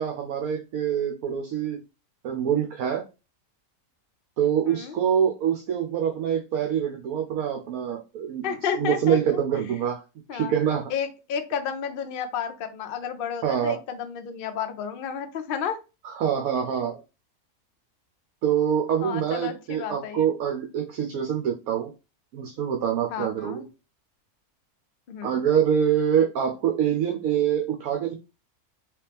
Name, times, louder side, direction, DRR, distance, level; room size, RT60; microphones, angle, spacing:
voice 1, 0.0-1.8 2.2-3.0 4.4-8.5 8.7-10.0 10.3-10.9 13.4-13.8 16.0-17.0 18.4-21.9 22.3-23.6 25.2-28.1, right 8 dB, 70° right, 3 dB, 1.1 m, -25 dB
voice 2, 4.7-5.0 8.4-9.4 10.3-10.5 10.9-15.8 19.0-20.3 23.1-23.7 25.1-25.4, left 7 dB, 65° left, 7 dB, 0.5 m, -31 dB
3.3 x 2.9 x 3.3 m, 0.29 s
omnidirectional pair, 1.6 m